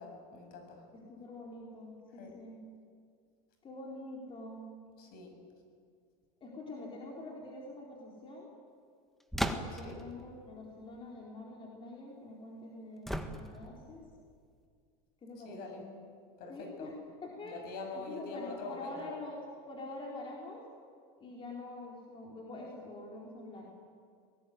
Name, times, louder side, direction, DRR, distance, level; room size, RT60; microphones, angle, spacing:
voice 1, 0.0-0.9 2.1-2.3 5.0-5.3 9.7-10.0 15.4-15.8 16.4-16.9 17.4-19.1, left 3 dB, 50° left, 4 dB, 7.2 m, -44 dB
voice 2, 0.9-2.6 3.6-4.6 6.4-8.5 9.4-14.0 15.2-15.9 16.5-16.9 17.2-17.6 17.9-19.4 19.6-20.6 21.2-23.7, left 2 dB, 25° left, -2 dB, 4.3 m, -45 dB
sound 1, 9.3-10.0 13.1-13.8, equal, ahead, 1.7 m, -35 dB
23.0 x 19.0 x 9.6 m, 2.2 s
supercardioid pair, 130°, 19 cm